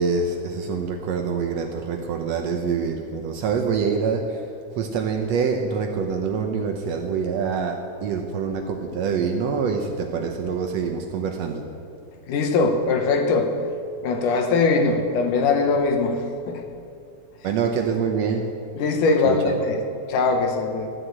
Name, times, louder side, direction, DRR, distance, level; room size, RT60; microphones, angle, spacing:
voice 1, 0.0-4.4 4.8-11.7 17.4-18.5 19.2-19.7, right 5 dB, 70° right, 4 dB, 1.7 m, -25 dB
voice 2, 12.3-13.5 14.0-16.6 18.8-19.8 20.1-20.9, left 4 dB, 80° left, 5 dB, 2.7 m, -21 dB
13.0 x 10.0 x 8.1 m, 2.5 s
omnidirectional pair, 3.6 m